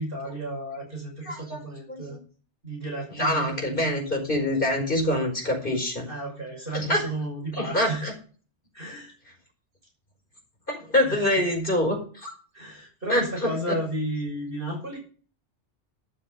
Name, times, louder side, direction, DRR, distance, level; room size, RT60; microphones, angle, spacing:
voice 1, 0.0-2.2 2.6-3.8 6.1-8.1 8.7-9.1 11.0-11.4 12.5-15.0, right 1 dB, 50° right, 0 dB, 6.4 m, -33 dB
voice 2, 1.2-1.6 1.9-2.0 3.2-6.1 6.7-7.0 7.5-8.1 10.7-12.3 13.1-13.2 13.7-13.8, left 1 dB, 45° left, 1 dB, 5.1 m, -25 dB
12.5 x 7.1 x 6.7 m, 0.41 s
omnidirectional pair, 1.2 m